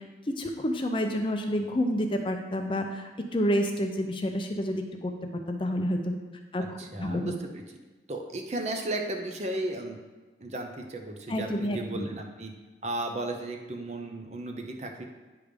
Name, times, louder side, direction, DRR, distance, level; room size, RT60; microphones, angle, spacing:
voice 1, 0.3-5.1 5.5-6.2 6.5-7.3 11.3-12.1, equal, 30° left, 4 dB, 0.5 m, -29 dB
voice 2, 6.6-7.8 8.1-10.0 10.4-12.5 12.8-15.0, right 2 dB, 40° right, 3 dB, 0.7 m, -35 dB
9.2 x 3.5 x 5.1 m, 1.3 s
head